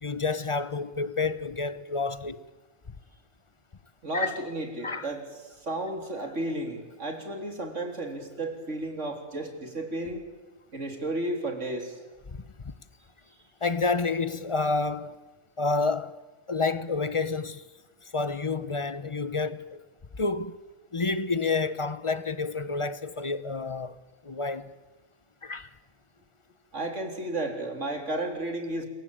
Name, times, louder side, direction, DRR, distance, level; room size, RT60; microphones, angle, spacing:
voice 1, 0.0-2.5 4.1-4.4 4.8-5.1 12.3-12.7 13.6-15.2 15.6-16.2 16.5-17.6 18.1-19.8 20.1-20.6 20.9-24.0 24.2-24.7 25.4-25.7, left 4 dB, 25° left, 0.8 m, -29 dB
voice 2, 4.0-10.2 10.7-12.0 26.7-28.9, right 1 dB, 70° right, 3.8 m, -33 dB
27.0 x 22.5 x 9.0 m
omnidirectional pair, 1.3 m